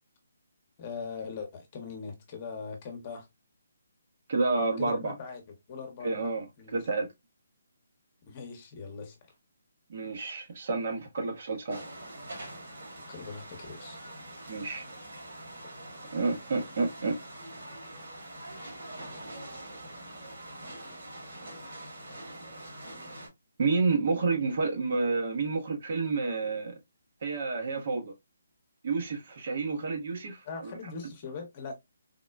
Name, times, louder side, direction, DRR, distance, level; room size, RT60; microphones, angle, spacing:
voice 1, 0.8-3.3 4.8-5.4 5.7-6.2 6.6-6.8 8.3-9.1 13.1-14.0 30.5-31.7, left 5 dB, 30° left, 0.9 m, -40 dB
voice 2, 4.3-5.1 6.0-7.1 9.9-11.8 14.5-14.9 16.1-17.2 23.6-26.7 27.2-28.1 28.8-30.7, right 3 dB, 50° right, 0.8 m, -29 dB
sound 1, 11.7-23.3, right 1 dB, 65° right, 1.8 m, -44 dB
3.6 x 2.1 x 2.3 m
hypercardioid pair, 155°, 0 cm